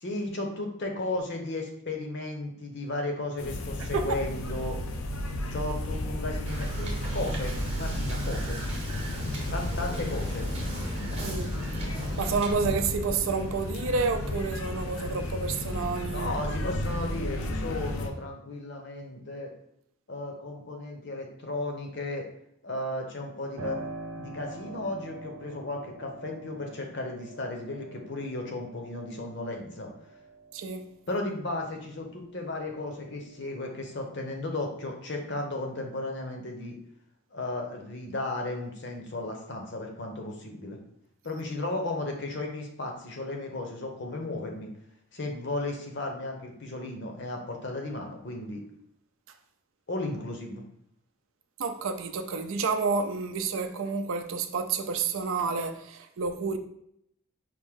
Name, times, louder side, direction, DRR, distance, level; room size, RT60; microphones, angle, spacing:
voice 1, 0.0-4.8 5.5-8.6 9.5-10.5 16.1-19.5 20.1-22.3 22.6-23.8 24.2-29.9 31.1-36.8 37.3-40.8 41.2-44.7 45.1-48.6 49.9-50.6, left 2 dB, 55° left, 0.8 m, -34 dB
sound 1, 3.4-18.1, left 1 dB, 85° left, 0.6 m, -33 dB
voice 2, 3.8-4.2 11.2-11.5 12.2-16.3 30.5-30.9 51.6-56.6, right 4 dB, 70° right, 0.4 m, -29 dB
Wind / Boat Water vehicle, 6.5-12.5, right 1 dB, 30° right, 0.8 m, -39 dB
Piano, 23.6-32.0 32.4-33.5, right 2 dB, 90° right, 0.8 m, -45 dB
4.9 x 2.6 x 3.6 m
head